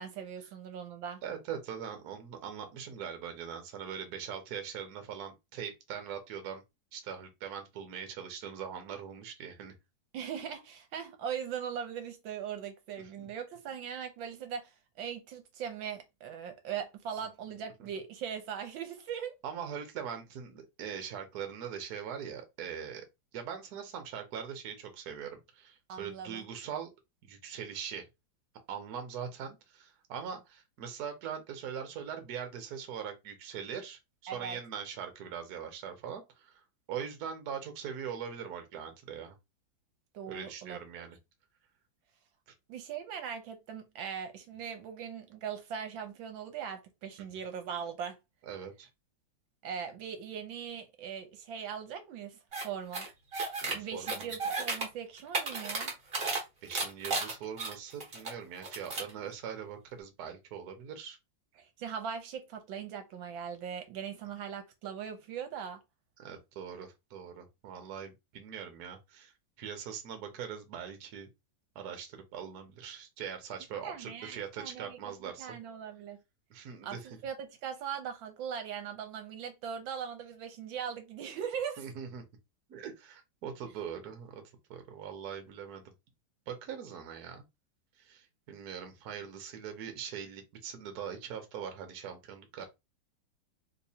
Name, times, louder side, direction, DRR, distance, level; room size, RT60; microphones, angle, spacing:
voice 1, 0.0-1.2 10.1-19.4 25.9-26.4 34.3-34.6 40.1-41.1 42.7-48.2 49.6-53.1 53.7-55.9 61.6-65.8 73.8-76.2 76.8-81.8, right 8 dB, 80° right, 1.4 m, -40 dB
voice 2, 1.2-6.6 6.9-9.7 13.0-13.3 19.4-23.1 23.3-26.9 27.2-28.1 28.7-36.6 36.9-39.4 40.3-41.2 47.2-47.4 48.5-48.9 53.6-54.2 56.6-61.2 66.2-69.3 69.6-71.3 71.7-75.6 76.5-77.2 81.8-82.2 82.7-84.4 84.7-85.9 86.5-87.4 88.0-92.6, right 7 dB, 60° right, 1.2 m, -41 dB
sound 1, 52.5-52.6 52.9-53.7 54.1-54.8 55.2-56.4 56.7-58.3 58.6-59.1, right 3 dB, 35° right, 1.1 m, -33 dB
3.6 x 2.9 x 2.7 m
omnidirectional pair, 2.1 m